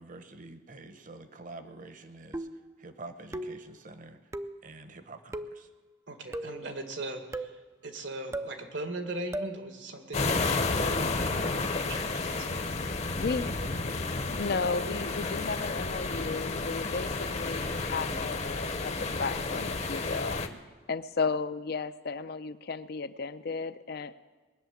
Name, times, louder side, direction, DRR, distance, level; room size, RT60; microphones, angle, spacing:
voice 1, 0.0-2.5 2.8-4.2 4.6-5.7, right 2 dB, 45° right, 9 dB, 1.1 m, -47 dB
sound 1, 2.3-2.7 3.3-3.7 4.3-4.6 5.3-5.6 6.3-6.7 7.3-7.6 8.3-8.6 9.3-9.6, right 1 dB, 15° right, 0.4 m, -37 dB
voice 2, 6.1-10.4 11.3-11.5 11.9-12.8, right 2 dB, 80° right, 5 dB, 2.0 m, -39 dB
sound 2, 10.1-20.5, left 3 dB, 35° left, 0.9 m, -31 dB
voice 3, 13.2-13.5 14.3-18.9 19.2-20.5 20.9-24.1, left 4 dB, 60° left, 13 dB, 0.6 m, -34 dB
20.5 x 6.9 x 9.2 m, 1.3 s
head